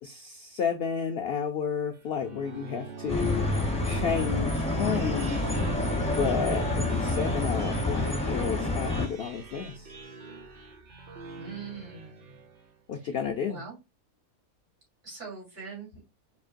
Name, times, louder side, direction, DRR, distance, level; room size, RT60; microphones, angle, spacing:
voice 1, 0.0-3.5 3.8-5.4 6.0-9.9 12.9-13.6, left 6 dB, 80° left, 0.5 m, -31 dB
sound 1, 1.9-12.8, right 4 dB, 55° right, 0.5 m, -44 dB
sound 2, 3.1-9.1, left 2 dB, 10° left, 0.4 m, -28 dB
voice 2, 11.4-12.4 12.9-13.7 15.0-16.0, right 5 dB, 85° right, 3.3 m, -43 dB
5.1 x 2.7 x 2.4 m
omnidirectional pair, 1.5 m